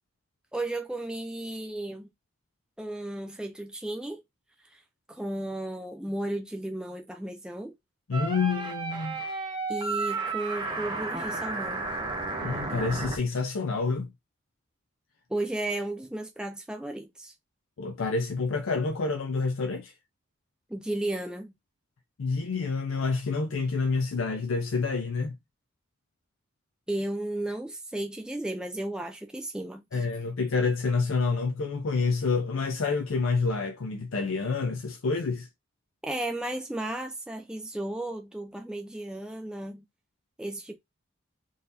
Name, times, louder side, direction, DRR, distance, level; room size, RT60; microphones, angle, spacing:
voice 1, 0.5-2.1 2.8-4.2 4.7-4.8 5.1-7.7 9.7-11.9 15.3-17.3 20.7-21.5 26.9-30.1 36.0-39.8 40.4-40.7, right 1 dB, 5° right, 0.3 m, -34 dB
voice 2, 8.1-9.2 12.4-14.1 17.8-19.9 22.2-25.3 29.9-35.5, left 4 dB, 80° left, 0.5 m, -28 dB
sound 1, 8.1-13.2, right 3 dB, 20° right, 0.7 m, -32 dB
3.9 x 2.7 x 2.6 m
head